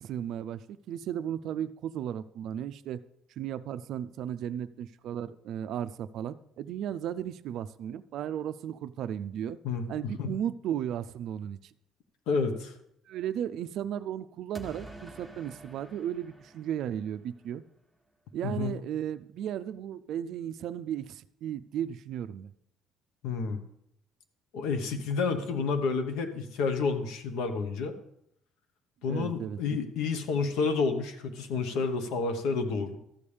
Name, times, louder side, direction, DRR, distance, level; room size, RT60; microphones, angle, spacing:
voice 1, 0.0-3.0 3.4-9.6 9.9-11.6 13.1-17.6 18.3-22.5 29.1-29.9, right 10 dB, 55° right, 13 dB, 0.3 m, -35 dB
voice 2, 9.6-10.3 12.3-12.7 18.4-18.7 23.2-23.6 24.5-27.9 29.0-33.0, left 4 dB, 80° left, 8 dB, 1.0 m, -30 dB
sound 1, 14.6-17.5, right 1 dB, ahead, 0.7 m, -48 dB
13.0 x 7.1 x 3.3 m, 0.75 s
cardioid pair, 170°, 0 cm